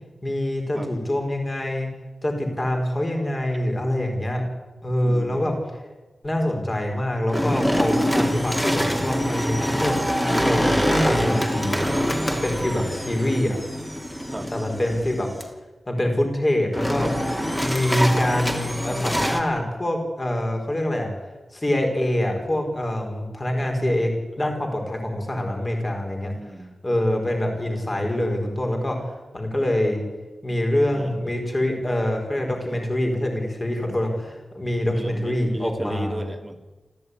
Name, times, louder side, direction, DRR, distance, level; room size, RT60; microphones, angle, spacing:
voice 1, 0.2-1.9 2.2-4.4 4.8-5.5 6.2-10.0 10.4-11.8 12.3-13.6 14.5-15.3 15.9-17.1 17.5-21.1 21.5-26.3 26.8-30.0 30.4-36.2, left 1 dB, 25° left, 3 dB, 5.1 m, -25 dB
voice 2, 5.0-5.6 14.3-14.5 14.8-15.0 24.4-24.5 26.3-26.7 30.9-31.1 34.9-36.6, right 1 dB, 15° right, 5 dB, 2.4 m, -35 dB
sound 1, 7.3-15.4 16.7-19.4, equal, 5° left, 2.9 m, -24 dB
26.0 x 15.0 x 9.9 m, 1.2 s
wide cardioid pair, 140°, 0 cm